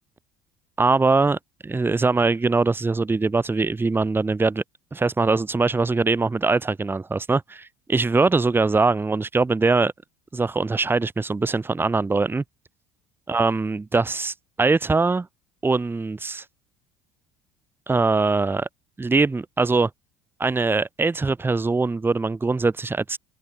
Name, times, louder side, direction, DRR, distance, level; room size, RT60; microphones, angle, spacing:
voice 1, 0.8-4.6 4.9-9.9 10.3-12.4 13.3-15.3 15.6-16.4 17.9-18.7 19.0-19.9 20.4-23.2, right 3 dB, 15° right, 1.4 m, -22 dB
figure-of-eight pair, 65°, 16 cm